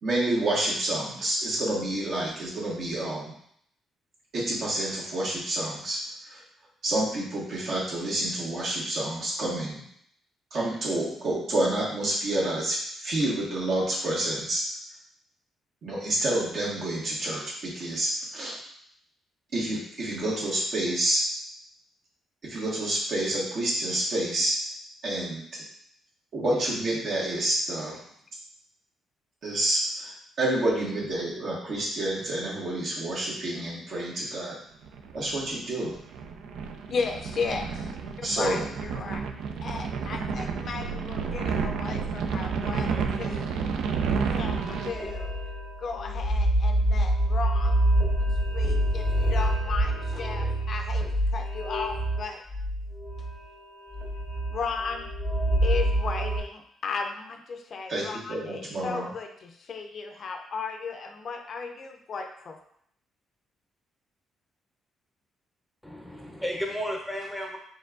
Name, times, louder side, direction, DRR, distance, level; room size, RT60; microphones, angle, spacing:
voice 1, 0.0-3.3 4.3-6.0 6.3-6.4 6.8-9.8 10.5-14.6 15.8-18.6 19.5-21.3 22.4-24.6 25.0-25.6 26.3-28.0 29.4-34.5 35.1-36.0 38.2-38.6 57.9-59.1, right 1 dB, 60° right, -5 dB, 1.5 m, -28 dB
sound 1, 34.9-44.9, right 5 dB, 80° right, 0.4 m, -31 dB
voice 2, 36.9-39.3 39.6-43.6 44.3-45.3 45.8-47.8 48.2-52.4 54.5-55.1 55.6-62.6, left 4 dB, 55° left, 4 dB, 0.5 m, -35 dB
sound 2, 44.4-56.4, right 1 dB, 25° right, 1.3 m, -26 dB
voice 3, 65.8-67.6, equal, 5° left, 1 dB, 0.7 m, -33 dB
4.4 x 3.4 x 2.5 m, 0.69 s
cardioid pair, 90°, 0 cm